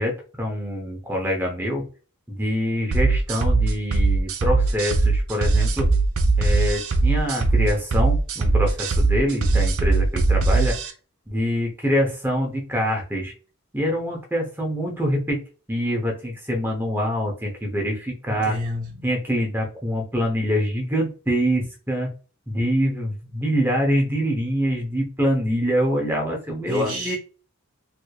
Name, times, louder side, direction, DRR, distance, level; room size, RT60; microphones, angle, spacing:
voice 1, 0.0-1.8 2.3-5.9 6.4-10.8 11.3-13.3 13.7-15.4 15.7-18.6 19.0-22.1 22.5-27.2, equal, 10° right, 0.8 m, -25 dB
sound 1, 2.9-10.9, right 3 dB, 80° right, 0.6 m, -20 dB
voice 2, 18.3-19.0 26.7-27.2, equal, 40° right, 0.9 m, -30 dB
3.4 x 3.2 x 2.4 m
head